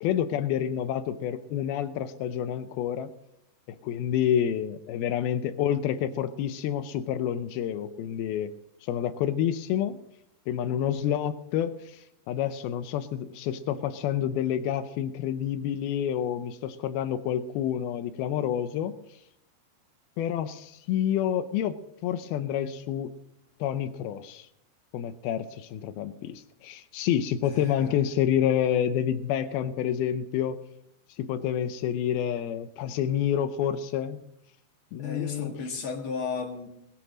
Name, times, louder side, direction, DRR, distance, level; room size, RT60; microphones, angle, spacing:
voice 1, 0.0-3.1 3.7-8.5 8.8-10.0 10.5-18.9 20.2-23.1 23.6-24.5 24.9-30.6 31.2-34.2 34.9-35.5, left 10 dB, 85° left, 11 dB, 2.2 m, -28 dB
voice 2, 27.4-28.0 35.0-36.7, left 5 dB, 45° left, 2 dB, 1.8 m, -34 dB
21.0 x 9.0 x 6.2 m, 0.79 s
omnidirectional pair, 5.2 m